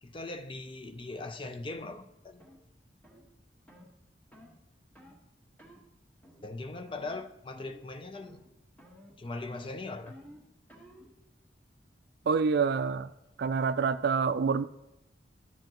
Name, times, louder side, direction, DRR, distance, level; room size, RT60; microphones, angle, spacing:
voice 1, 0.0-2.5 6.4-8.4 9.2-10.2, left 2 dB, 30° left, 0.5 m, -40 dB
sound 1, 1.1-1.3 1.8-2.0 2.4-2.6 3.0-3.2 3.7-3.9 4.3-4.6 5.0-5.2 5.6-5.8 6.2-6.6 6.9-7.2 7.5-7.9 8.1-8.5 8.8-11.1, equal, 10° left, 1.5 m, -54 dB
voice 2, 12.3-13.1 13.4-14.6, right 5 dB, 60° right, 0.4 m, -27 dB
12.5 x 7.7 x 3.0 m
head